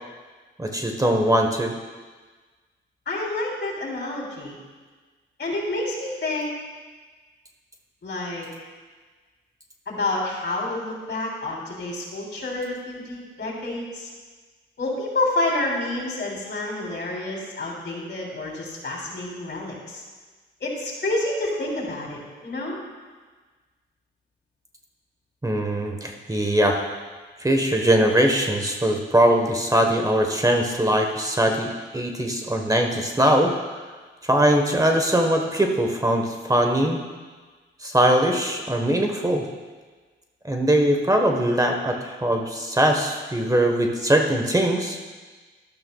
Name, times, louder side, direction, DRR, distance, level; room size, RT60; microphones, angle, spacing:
voice 1, 0.6-1.7 25.4-26.8 27.4-33.5 34.2-37.0 37.8-39.4 40.4-45.0, right 1 dB, 15° right, 3 dB, 1.2 m, -21 dB
voice 2, 3.0-4.6 5.4-6.5 8.0-8.5 9.9-14.1 14.8-20.0 20.6-22.8, left 2 dB, 55° left, -2 dB, 3.4 m, -28 dB
12.0 x 12.0 x 2.3 m, 1.4 s
cardioid pair, 65°, 21 cm